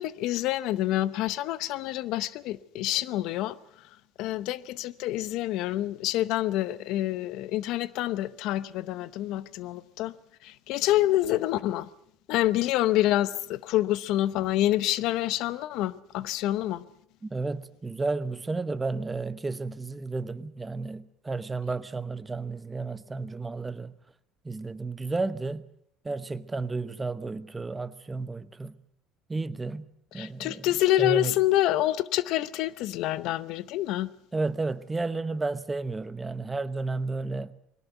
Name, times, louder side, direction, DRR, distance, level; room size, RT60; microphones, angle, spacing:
voice 1, 0.0-3.6 4.2-10.1 10.4-11.9 12.3-16.8 30.1-34.1, left 14 dB, 65° left, 0.8 m, -27 dB
voice 2, 17.2-23.9 24.4-25.6 26.0-28.8 29.3-29.9 30.1-30.7 31.0-31.4 34.3-37.5, right 3 dB, 15° right, 1.0 m, -32 dB
21.0 x 18.0 x 8.0 m
cardioid pair, 125°, 0 cm